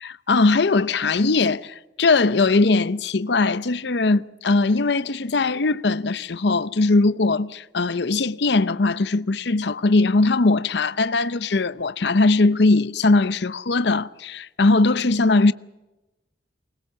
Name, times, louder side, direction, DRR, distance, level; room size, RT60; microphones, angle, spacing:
voice 1, 0.0-15.5, left 3 dB, 65° left, 0.7 m, -20 dB
24.0 x 20.0 x 7.4 m
head